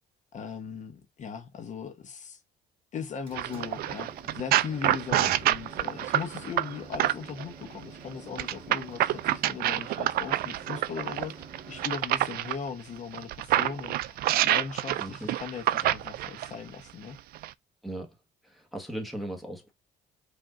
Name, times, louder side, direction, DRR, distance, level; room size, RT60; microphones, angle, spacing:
voice 1, 0.3-2.4 2.9-17.2, left 6 dB, 45° left, 1.0 m, -39 dB
sound 1, 3.0-11.9, right 4 dB, 30° right, 2.2 m, -48 dB
sound 2, 3.4-7.4 8.4-12.6 13.1-16.5 17.3-17.5, right 14 dB, 65° right, 0.4 m, -27 dB
voice 2, 15.0-15.4 17.8-18.1 18.4-19.7, right 1 dB, ahead, 1.3 m, -38 dB
4.9 x 2.7 x 3.7 m
cardioid pair, 110°, 17 cm